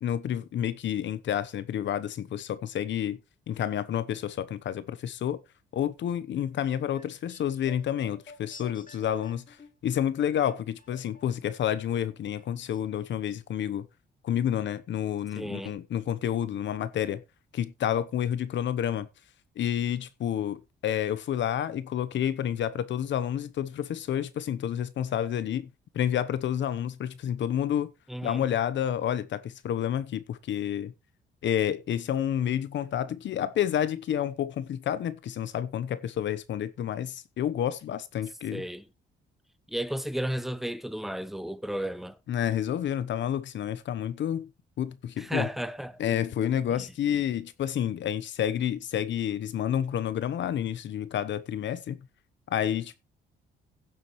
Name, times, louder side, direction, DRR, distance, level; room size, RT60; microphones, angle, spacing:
voice 1, 0.0-3.2 3.5-5.4 5.7-9.6 9.8-13.9 14.2-17.2 17.5-19.1 19.6-25.7 25.9-27.9 28.2-30.9 31.4-38.6 42.3-44.5 44.8-45.5 46.0-52.0 52.5-53.0, left 10 dB, 65° left, 1.0 m, -29 dB
sound 1, 6.4-11.6 11.9-12.8 13.1-13.2, left 3 dB, 40° left, 3.6 m, -52 dB
voice 2, 15.4-15.7 28.1-28.4 38.5-38.9 39.7-42.2 45.2-46.0, right 1 dB, ahead, 0.9 m, -33 dB
16.5 x 7.4 x 3.2 m
cardioid pair, 90°, 20 cm